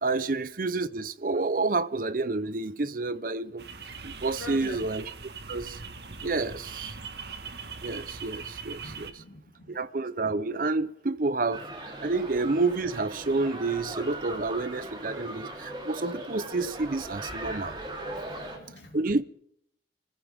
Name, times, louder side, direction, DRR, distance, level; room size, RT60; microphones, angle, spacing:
voice 1, 0.0-3.7 4.0-5.1 5.5-5.8 6.2-6.9 7.8-9.2 9.7-17.8 18.9-19.2, right 3 dB, 50° right, 0.7 m, -29 dB
sound 1, 3.6-9.1, right 5 dB, 65° right, 1.4 m, -41 dB
voice 2, 4.4-4.8 8.8-9.8 17.7-17.8 18.1-19.0, left 1 dB, 75° left, 3.3 m, -45 dB
sound 2, 11.5-18.6, right 1 dB, 25° right, 3.3 m, -39 dB
27.0 x 15.5 x 3.5 m
head